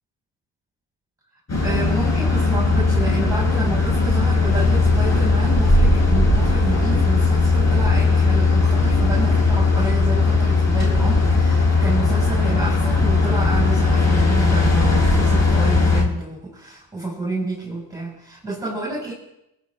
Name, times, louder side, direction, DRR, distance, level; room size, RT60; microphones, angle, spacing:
sound 1, 1.5-16.0, left 3 dB, 35° left, 6.3 m, -18 dB
voice 1, 1.6-19.1, right 2 dB, 5° right, -5 dB, 6.4 m, -29 dB
21.0 x 10.5 x 3.7 m, 0.85 s
supercardioid pair, 65°, 47 cm